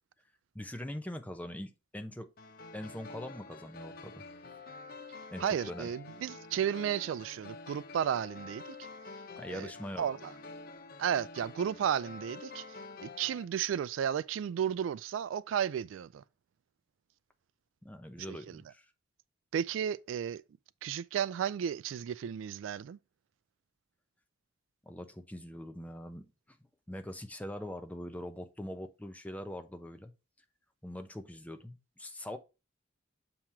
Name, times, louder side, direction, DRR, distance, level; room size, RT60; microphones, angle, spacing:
voice 1, 0.5-2.3 2.7-4.2 5.3-5.9 9.4-10.1 17.8-18.8 24.8-26.6 26.9-30.1 30.8-32.4, left 1 dB, 10° left, 0.7 m, -42 dB
sound 1, 2.4-13.5, left 3 dB, 50° left, 0.7 m, -48 dB
voice 2, 5.4-8.6 9.5-9.7 10.0-10.3 11.0-12.6 13.0-16.2 18.3-18.6 19.5-20.4 20.8-23.0, right 8 dB, 75° right, 0.3 m, -33 dB
7.3 x 3.0 x 4.7 m
head